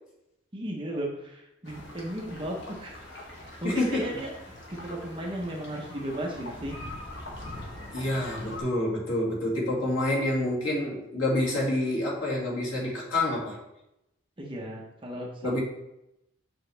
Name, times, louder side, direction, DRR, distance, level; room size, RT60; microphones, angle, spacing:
voice 1, 0.5-3.0 3.4-6.8 14.4-15.6, right 1 dB, 25° right, -1 dB, 0.9 m, -35 dB
sound 1, 1.6-8.6, left 1 dB, 60° left, 1.6 m, -42 dB
voice 2, 3.6-4.1 7.9-13.6 15.4-15.6, left 1 dB, 80° left, -5 dB, 2.3 m, -27 dB
6.3 x 6.2 x 3.4 m, 0.85 s
head